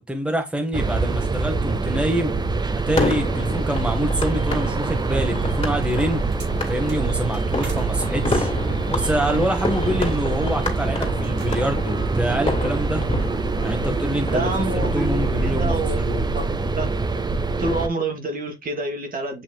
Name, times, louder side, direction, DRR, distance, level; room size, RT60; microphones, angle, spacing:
voice 1, 0.0-2.3 2.7-6.2 6.7-8.5 8.9-13.0 13.6-14.5 14.9-16.2, equal, 5° right, 1.1 m, -26 dB
sound 1, 0.7-17.9, right 3 dB, 20° right, 0.6 m, -24 dB
sound 2, 3.0-14.9, left 2 dB, 30° left, 2.2 m, -30 dB
sound 3, 5.8-7.9 8.4-10.2 10.5-10.9 11.2-11.8, right 2 dB, 65° right, 2.3 m, -41 dB
voice 2, 14.3-16.5 16.7-16.9 17.6-19.4, right 2 dB, 45° right, 1.5 m, -28 dB
7.9 x 3.0 x 2.2 m
cardioid pair, 90°, 20 cm